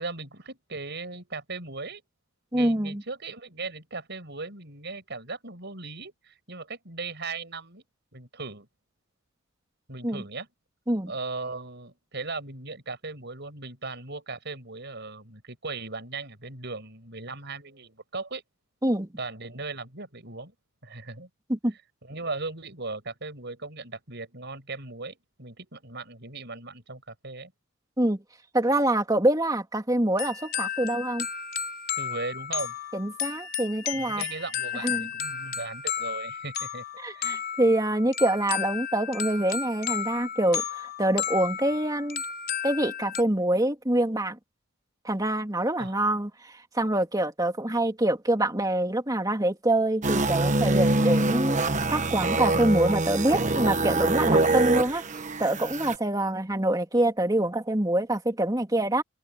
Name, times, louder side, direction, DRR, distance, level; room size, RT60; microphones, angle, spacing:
voice 1, 0.0-2.0 2.5-7.8 8.1-8.7 9.9-10.5 11.1-18.4 19.2-20.5 20.8-21.3 22.0-27.5 32.0-32.8 33.9-36.8 37.1-37.4 45.8-46.0, right 3 dB, 55° right, 6.2 m, -38 dB
voice 2, 2.5-3.0 10.0-10.2 10.9-11.1 18.8-19.1 21.5-21.7 28.0-28.2 28.5-31.3 32.9-34.2 34.8-35.1 37.0-42.2 42.6-44.4 45.0-51.6 51.9-55.0 55.4-59.0, right 1 dB, 20° right, 2.9 m, -25 dB
sound 1, 30.2-43.2, left 8 dB, 50° left, 4.9 m, -33 dB
sound 2, 50.0-56.0, right 2 dB, 35° right, 1.2 m, -24 dB
open air
head